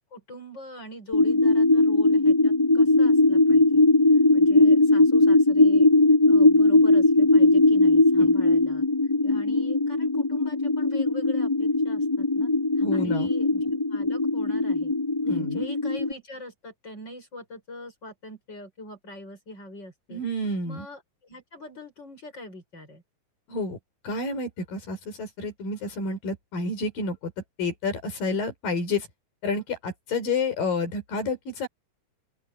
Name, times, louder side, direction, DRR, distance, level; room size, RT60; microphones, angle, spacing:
voice 1, 0.1-3.8 4.3-5.9 6.3-8.9 9.2-14.9 15.3-20.2 20.6-23.0, left 1 dB, 30° left, 7.1 m, -43 dB
sound 1, 1.1-16.1, left 2 dB, 10° left, 2.8 m, -20 dB
voice 2, 12.8-13.3 15.2-15.7 20.1-20.8 23.5-23.8 24.0-27.3 27.6-29.1 29.4-31.7, left 3 dB, 85° left, 6.8 m, -29 dB
open air
omnidirectional pair, 3.9 m